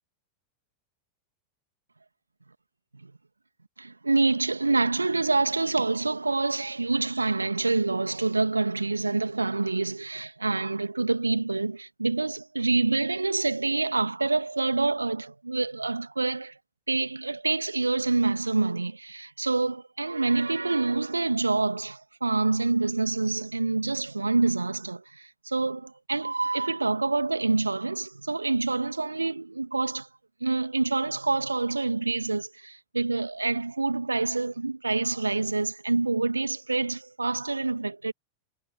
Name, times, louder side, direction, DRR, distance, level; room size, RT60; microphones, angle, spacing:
voice 1, 3.8-16.5 16.9-30.1 30.4-38.1, right 3 dB, 80° right, 2.6 m, -27 dB
figure-of-eight pair, 90°, 0 cm